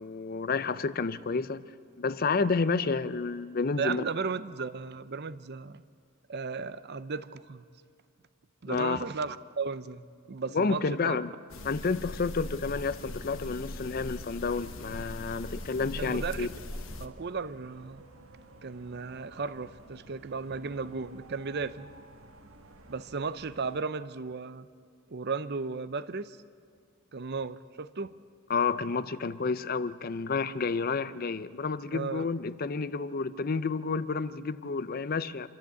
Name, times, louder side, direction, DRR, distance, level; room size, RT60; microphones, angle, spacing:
voice 1, 0.0-1.6 2.0-4.0 8.7-9.0 10.5-11.3 11.6-16.5 28.5-35.5, left 4 dB, 40° left, 15 dB, 0.5 m, -30 dB
voice 2, 3.8-5.8 6.3-7.7 8.6-11.2 15.8-18.0 18.6-21.9 22.9-24.7 25.1-26.4 27.1-28.1 31.9-32.2, right 4 dB, 45° right, 14 dB, 0.6 m, -35 dB
sound 1, 11.5-17.1, left 1 dB, 60° left, 1.1 m, -40 dB
sound 2, 14.4-23.8, right 2 dB, 65° right, 1.4 m, -54 dB
26.5 x 13.0 x 8.3 m, 2.2 s
head